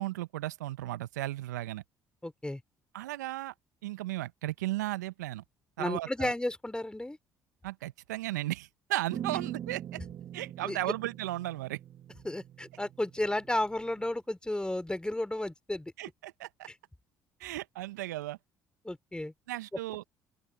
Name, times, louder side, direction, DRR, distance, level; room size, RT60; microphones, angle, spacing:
voice 1, 0.0-1.8 2.9-3.5 3.8-5.4 5.8-6.3 7.6-10.0 10.3-11.8 16.0-16.7 17.4-18.4 19.5-20.0, right 16 dB, 80° right, 1.1 m, -35 dB
voice 2, 2.2-2.6 5.8-7.2 10.6-10.8 12.2-15.9 18.8-19.3, left 1 dB, 10° left, 3.2 m, -33 dB
sound 1, 9.1-14.1, right 10 dB, 50° right, 2.3 m, -43 dB
open air
hypercardioid pair, 55°, 9 cm